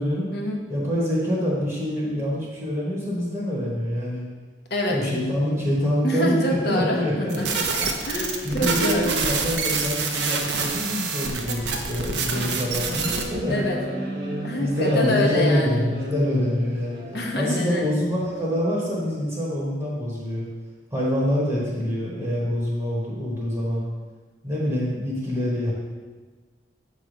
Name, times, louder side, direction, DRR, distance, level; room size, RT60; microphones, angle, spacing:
voice 1, 0.7-4.2 4.8-7.6 8.4-13.8 14.6-17.0 17.3-20.4 20.9-23.8 24.4-25.7, equal, 15° right, -7 dB, 1.2 m, -26 dB
voice 2, 4.7-5.1 6.0-7.5 8.0-9.1 13.5-13.8 14.4-15.8 17.1-17.9, left 1 dB, 60° left, 0 dB, 1.0 m, -26 dB
sound 1, 7.3-13.2, right 4 dB, 75° right, 0.7 m, -26 dB
sound 2, 12.3-17.3, equal, 60° right, 1.3 m, -31 dB
7.1 x 3.1 x 5.2 m, 1.4 s
head